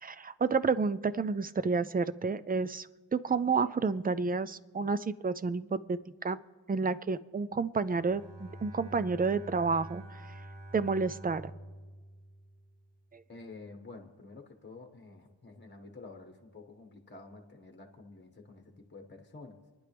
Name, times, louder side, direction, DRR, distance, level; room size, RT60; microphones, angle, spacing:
voice 1, 0.0-6.4 6.7-10.2 10.7-11.5 13.1-13.2, right 4 dB, 20° right, 14 dB, 0.4 m, -30 dB
Bowed string instrument, 7.8-13.2, right 1 dB, 70° right, 1.3 m, -48 dB
voice 2, 13.3-19.6, left 3 dB, 25° left, 4 dB, 1.5 m, -50 dB
28.0 x 10.5 x 3.4 m, 1.4 s
wide cardioid pair, 100°, 44 cm